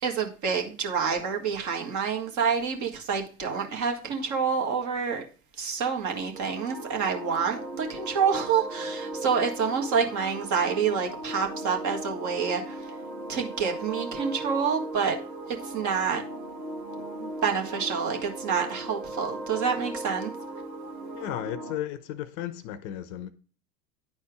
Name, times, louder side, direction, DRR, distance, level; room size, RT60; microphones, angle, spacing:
voice 1, 0.0-5.2 5.6-12.9 13.3-15.2 15.5-16.2 17.0-20.3, right 6 dB, 35° right, 1.8 m, -28 dB
sound 1, 6.3-21.7, right 1 dB, 85° right, 1.7 m, -38 dB
voice 2, 21.1-23.3, left 12 dB, 50° left, 0.8 m, -34 dB
10.0 x 4.3 x 4.8 m
hypercardioid pair, 95°, 49 cm